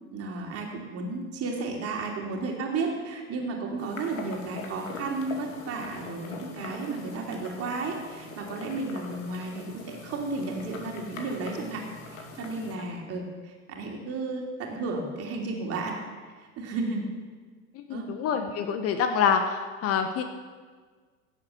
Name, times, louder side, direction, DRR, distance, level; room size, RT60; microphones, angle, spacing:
voice 1, 0.1-16.0 16.4-17.0 17.9-18.1, right 3 dB, 35° right, 1 dB, 2.9 m, -33 dB
sound 1, 3.8-12.7, left 3 dB, 60° left, 2.4 m, -43 dB
voice 2, 17.7-20.2, left 7 dB, 35° left, 7 dB, 1.1 m, -26 dB
16.5 x 7.8 x 6.6 m, 1.5 s
figure-of-eight pair, 80°, 43 cm